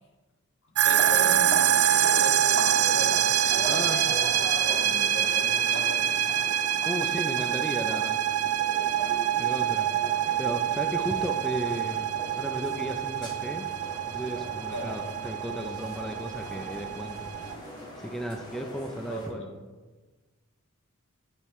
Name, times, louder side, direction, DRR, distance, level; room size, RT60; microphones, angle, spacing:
voice 1, 0.8-4.3 4.6-6.4 14.7-15.0 18.9-19.6, equal, 60° left, -1 dB, 1.8 m, -39 dB
sound 1, 0.8-17.5, right 10 dB, 70° right, 0.4 m, -26 dB
sound 2, 0.9-19.3, equal, 20° left, 1.7 m, -40 dB
voice 2, 3.7-4.2 6.9-8.2 9.4-9.9 10.4-13.7 14.1-19.4, equal, ahead, 3 dB, 0.5 m, -35 dB
8.8 x 8.3 x 3.1 m, 1.3 s
head